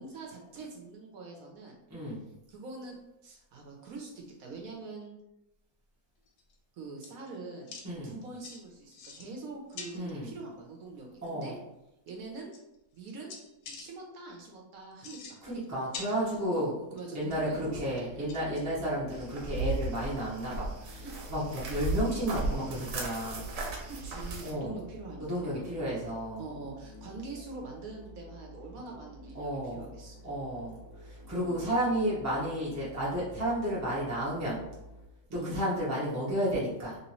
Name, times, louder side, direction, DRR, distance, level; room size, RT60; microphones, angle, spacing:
voice 1, 0.0-1.8 2.5-3.0 3.2-5.1 6.8-7.7 8.0-11.6 12.1-12.5 12.9-13.3 13.8-15.4 16.2-18.5 21.0-21.1 23.9-25.7 26.4-30.2 31.3-31.6 35.3-35.6, right 3 dB, 65° right, 0 dB, 0.9 m, -44 dB
sound 1, 6.3-6.5 7.0-7.3 7.6-7.8 8.4-8.6 8.9-9.4 9.7-10.1 11.5-11.6 12.1-12.2 12.5-13.0 13.3-13.9 14.9-15.7 15.9-16.6 17.0-17.5 18.0-18.6 19.1-19.2 19.6-19.7 20.0-20.2 20.5-20.6 22.6-22.7, left 4 dB, 75° left, 1.0 m, -45 dB
voice 2, 9.9-10.3 11.2-11.5 15.4-16.7 17.1-21.0 21.3-23.4 24.4-24.8 25.2-26.4 29.3-29.8 30.2-30.8 31.0-34.6 35.3-37.0, equal, 20° right, -8 dB, 0.4 m, -32 dB
sound 2, 17.2-35.1, equal, 20° left, 0.9 m, -50 dB
sound 3, 19.1-24.5, right 2 dB, 85° right, 1.3 m, -35 dB
3.0 x 2.9 x 3.0 m, 0.89 s
omnidirectional pair, 1.9 m